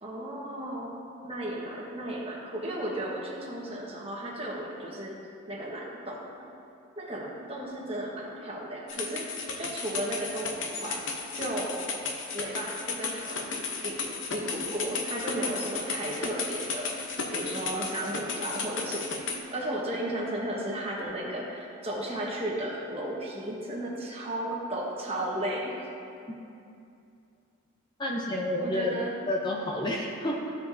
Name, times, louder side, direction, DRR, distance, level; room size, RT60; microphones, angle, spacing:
voice 1, 0.0-5.2 5.5-6.4 7.0-11.0 11.3-12.0 12.3-25.9 28.6-29.2, right 1 dB, 25° right, -3 dB, 1.1 m, -34 dB
sound 1, 8.9-19.4, left 4 dB, 55° left, 0.7 m, -34 dB
voice 2, 28.0-29.0 29.3-30.5, left 1 dB, 20° left, -2 dB, 0.5 m, -30 dB
14.0 x 5.1 x 2.6 m, 2.6 s
head